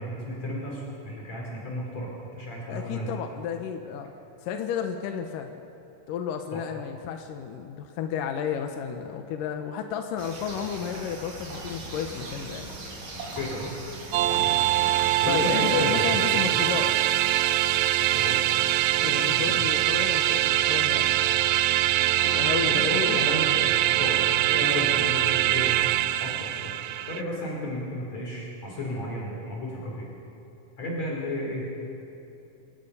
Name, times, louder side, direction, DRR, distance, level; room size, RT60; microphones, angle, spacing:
voice 1, 0.0-3.1 6.5-6.6 13.4-13.7 14.4-14.7 15.2-16.6 18.0-18.4 19.1-19.5 22.6-25.7 26.2-26.8 27.1-30.1 30.8-31.7, left 1 dB, 50° left, -3 dB, 4.6 m, -33 dB
voice 2, 2.7-4.1 4.4-5.7 6.1-12.7 14.3-14.5 15.3-16.9 19.0-21.1 22.2-23.3, left 8 dB, 75° left, 5 dB, 2.6 m, -32 dB
sound 1, 10.2-15.7, right 2 dB, 70° right, 4.6 m, -39 dB
sound 2, 14.1-27.2, right 14 dB, 90° right, 1.6 m, -23 dB
27.0 x 18.5 x 5.6 m, 3.0 s
omnidirectional pair, 4.0 m